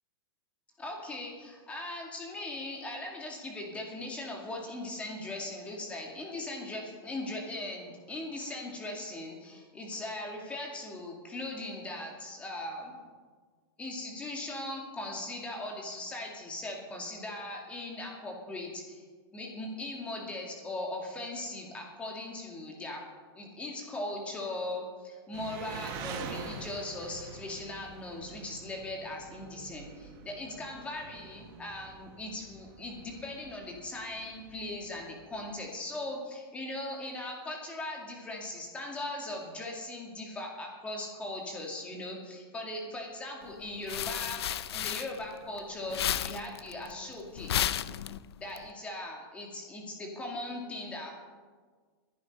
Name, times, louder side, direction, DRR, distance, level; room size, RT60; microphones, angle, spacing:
voice 1, 0.8-12.9 13.8-19.0 19.3-23.0 23.3-44.4 44.7-47.5 48.4-51.1, left 2 dB, 10° left, 0 dB, 2.3 m, -39 dB
Engine, 25.3-35.5, right 5 dB, 30° right, 1.6 m, -46 dB
trash rustling, 43.5-45.6 45.9-48.6, left 10 dB, 75° left, 0.7 m, -33 dB
20.5 x 10.5 x 5.4 m, 1.5 s
supercardioid pair, 170°, 13 cm